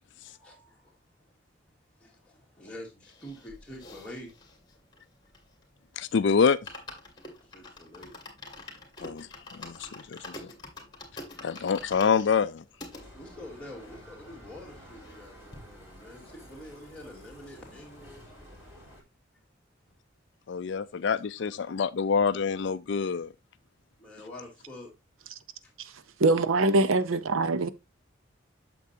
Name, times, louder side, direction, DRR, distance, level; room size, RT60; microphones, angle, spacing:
voice 1, 0.2-1.3 2.0-4.3 7.3-8.1 8.7-8.8 10.0-10.1 11.0-11.4 13.1-18.5 24.0-24.9 25.6-25.7 26.7-26.9, left 1 dB, 5° left, 2.8 m, -47 dB
sound 1, 3.0-5.8 6.1-6.2 6.5-13.0 13.6-13.7 13.9-14.0 14.3-15.2 15.5-15.6, left 2 dB, 20° left, 2.4 m, -46 dB
voice 2, 6.0-6.6 9.0-9.3 9.6-10.2 11.4-12.6 20.5-23.3, left 6 dB, 60° left, 0.4 m, -26 dB
Bicycle, 12.9-19.0, equal, 15° right, 3.4 m, -51 dB
voice 3, 26.2-27.7, right 2 dB, 90° right, 0.7 m, -23 dB
8.3 x 7.0 x 2.7 m
head